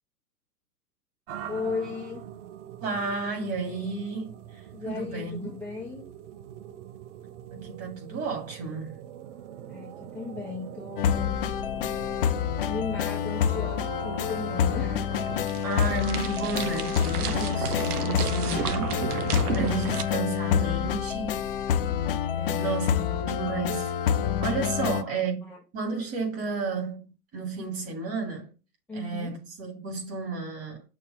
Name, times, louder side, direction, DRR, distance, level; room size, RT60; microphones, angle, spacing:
sound 1, 1.3-15.4, right 10 dB, 45° right, 0.7 m, -43 dB
voice 1, 1.5-2.2 4.7-6.1 9.7-11.4 12.6-15.2 22.3-23.8 25.0-25.6 28.9-29.4, left 4 dB, 5° left, 0.9 m, -37 dB
voice 2, 2.8-5.5 7.5-9.0 15.6-21.4 22.6-23.9 24.4-28.5 28.9-30.8, right 4 dB, 30° right, 2.6 m, -32 dB
sound 2, 11.0-25.0, left 8 dB, 40° left, 0.5 m, -27 dB
sound 3, 14.1-20.0, right 7 dB, 65° right, 1.0 m, -33 dB
6.8 x 2.9 x 5.6 m
hypercardioid pair, 130°, 48 cm